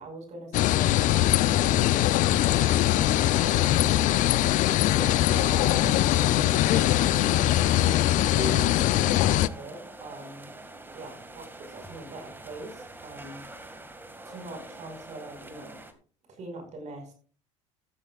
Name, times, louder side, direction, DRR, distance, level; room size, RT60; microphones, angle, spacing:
voice 1, 0.0-7.5 7.9-10.5 10.9-13.4 14.2-15.8 16.3-17.1, right 2 dB, 50° right, 5 dB, 5.2 m, -42 dB
sound 1, 0.5-9.5, left 14 dB, 55° left, 0.6 m, -22 dB
sound 2, 2.5-15.9, right 2 dB, 15° right, 2.1 m, -44 dB
15.0 x 13.0 x 2.4 m, 0.40 s
supercardioid pair, 85°, 15 cm